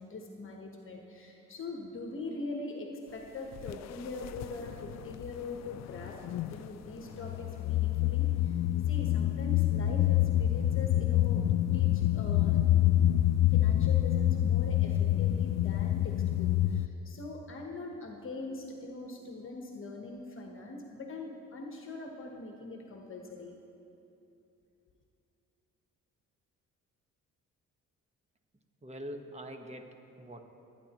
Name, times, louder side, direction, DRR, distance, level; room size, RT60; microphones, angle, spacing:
voice 1, 0.0-8.6 8.9-11.4 11.7-12.6 13.5-23.6, left 2 dB, 45° left, 1 dB, 1.2 m, -42 dB
sound 1, 3.6-3.7 4.2-5.4 5.7-6.7 7.2-16.9, left 13 dB, 60° left, 0.4 m, -27 dB
voice 2, 28.8-30.4, equal, 20° right, 5 dB, 1.2 m, -44 dB
23.0 x 9.8 x 3.0 m, 2.8 s
cardioid pair, 90°, 30 cm